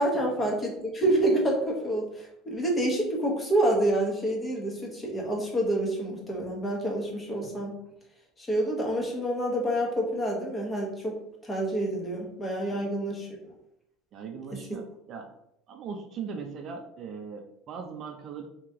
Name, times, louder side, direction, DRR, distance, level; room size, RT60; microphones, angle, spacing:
voice 1, 0.0-7.8 8.4-11.2 11.4-13.3 14.5-14.6, right 1 dB, 15° left, -1 dB, 1.1 m, -28 dB
voice 2, 14.1-15.3 15.7-18.5, right 5 dB, 45° right, 4 dB, 0.5 m, -39 dB
3.1 x 2.9 x 3.5 m, 0.78 s
cardioid pair, 130°, 0 cm